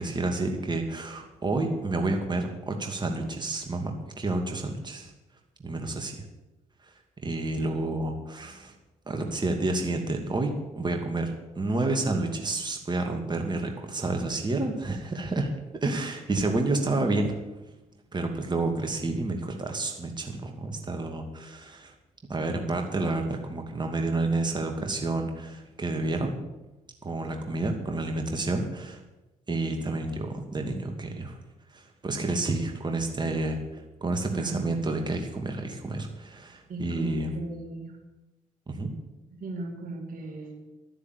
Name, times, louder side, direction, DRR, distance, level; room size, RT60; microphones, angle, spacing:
voice 1, 0.0-5.1 5.6-6.3 6.8-6.9 7.2-8.7 9.1-17.4 18.1-21.9 22.3-26.4 27.0-29.0 29.5-31.4 31.7-37.3 38.7-38.9, right 2 dB, 25° right, 3 dB, 2.4 m, -30 dB
voice 2, 34.3-34.7 36.7-38.0 39.3-40.7, right 2 dB, 55° right, 3 dB, 2.6 m, -37 dB
11.5 x 9.7 x 8.3 m, 1.0 s
hypercardioid pair, 45°, 17 cm